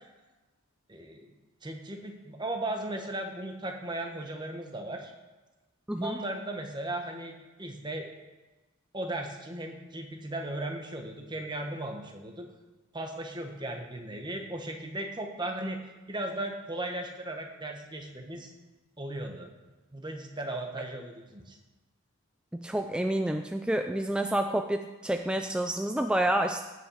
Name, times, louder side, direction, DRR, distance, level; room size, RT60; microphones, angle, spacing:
voice 1, 0.9-1.3 1.6-5.1 6.0-8.1 8.9-12.5 12.9-15.8 16.1-18.5 19.0-19.5 19.9-21.6, right 1 dB, 20° right, 3 dB, 1.2 m, -36 dB
voice 2, 5.9-6.2 22.6-26.7, right 1 dB, 5° right, 5 dB, 0.3 m, -29 dB
16.5 x 5.8 x 5.7 m, 1.2 s
head